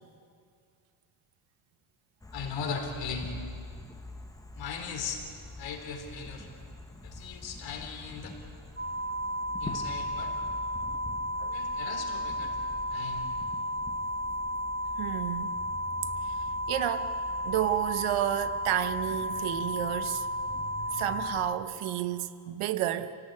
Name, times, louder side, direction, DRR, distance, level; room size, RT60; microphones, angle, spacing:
sound 1, 2.2-21.5, left 2 dB, 5° left, 1.2 m, -46 dB
voice 1, 2.3-3.3 4.5-5.2 5.6-6.5 7.0-8.4 9.6-10.3 11.5-12.6 12.9-13.3, left 5 dB, 65° left, 3.9 m, -38 dB
sound 2, 8.8-21.5, equal, 25° right, 2.3 m, -33 dB
voice 2, 15.0-15.6 16.7-17.1 17.4-20.3 20.9-23.1, right 13 dB, 85° right, 1.2 m, -31 dB
27.5 x 17.5 x 9.6 m
cardioid pair, 160°, 48 cm